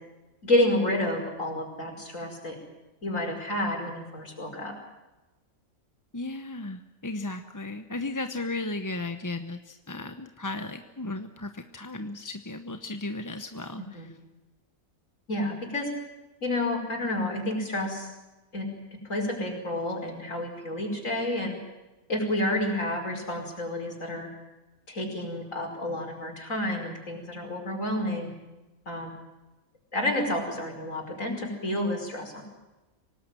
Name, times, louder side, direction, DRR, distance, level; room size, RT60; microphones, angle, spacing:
voice 1, 0.4-2.6 3.0-4.7 13.9-14.1 15.3-15.9 16.4-18.1 18.5-18.7 19.1-21.6 22.1-24.3 24.9-28.3 28.9-29.1 29.9-32.4, left 1 dB, 65° left, 2 dB, 5.6 m, -29 dB
voice 2, 6.1-14.1, left 2 dB, 15° left, 8 dB, 0.8 m, -35 dB
25.0 x 18.5 x 9.1 m, 1.1 s
omnidirectional pair, 1.4 m